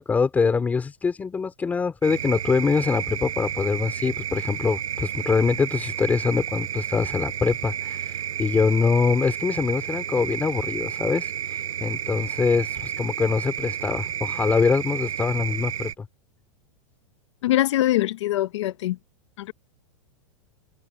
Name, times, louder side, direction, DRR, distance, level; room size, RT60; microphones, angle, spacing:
voice 1, 0.0-16.1, left 5 dB, 10° left, 3.6 m, -24 dB
sound 1, 2.0-15.9, right 10 dB, 85° right, 7.1 m, -31 dB
voice 2, 17.4-19.0 19.4-19.5, left 14 dB, 60° left, 1.6 m, -23 dB
supercardioid pair, 170°, 17 cm